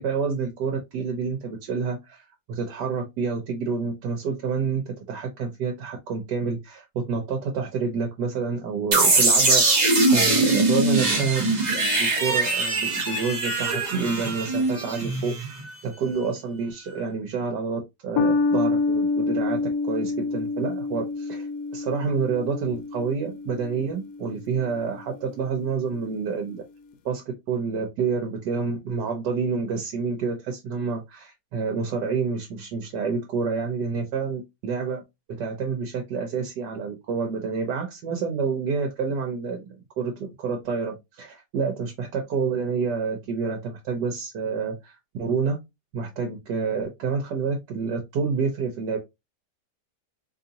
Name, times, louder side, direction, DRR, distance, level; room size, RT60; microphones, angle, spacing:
voice 1, 0.0-9.8 10.1-21.5 21.7-26.6 27.0-35.0 35.4-45.6 45.9-49.0, right 5 dB, 85° right, 3 dB, 1.4 m, -28 dB
sound 1, 8.9-15.7, right 2 dB, 35° right, 0.9 m, -22 dB
sound 2, 18.2-24.9, left 3 dB, 75° left, 1.0 m, -27 dB
3.9 x 3.1 x 2.7 m, 0.21 s
omnidirectional pair, 1.8 m